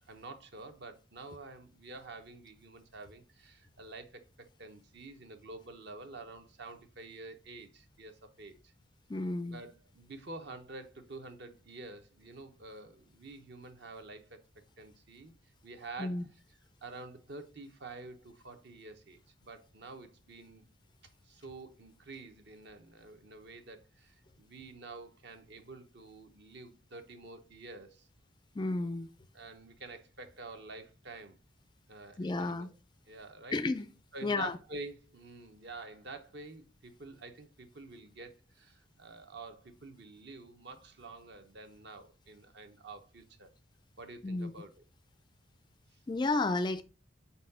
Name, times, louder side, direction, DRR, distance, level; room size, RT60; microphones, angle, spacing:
voice 1, 0.1-8.7 9.5-14.4 14.8-15.3 15.6-16.2 16.8-20.6 21.2-28.1 29.3-31.4 31.9-32.7 33.1-33.6 34.1-43.5 44.0-44.8 45.9-46.0, right 3 dB, 55° right, 0.9 m, -48 dB
voice 2, 9.1-9.6 16.0-16.2 28.6-29.1 32.2-32.7 33.5-33.9 34.2-34.6 44.2-44.5 46.1-46.8, left 2 dB, 20° left, 0.3 m, -32 dB
4.6 x 4.2 x 5.5 m
head